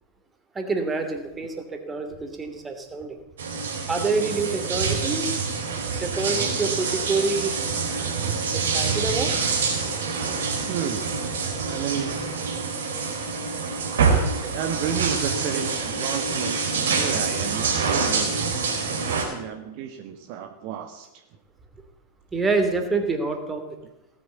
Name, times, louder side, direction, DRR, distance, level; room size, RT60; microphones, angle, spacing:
voice 1, 0.5-3.2 3.9-5.3 6.0-7.5 8.5-9.4 22.3-23.6, right 3 dB, 15° right, 6 dB, 2.7 m, -27 dB
sound 1, 3.4-19.2, right 5 dB, 65° right, 4.1 m, -26 dB
voice 2, 10.7-11.1 11.7-12.2 14.4-18.5 18.9-21.2, right 8 dB, 45° right, 5 dB, 1.5 m, -32 dB
17.5 x 9.5 x 8.3 m, 0.95 s
figure-of-eight pair, 90°, 0 cm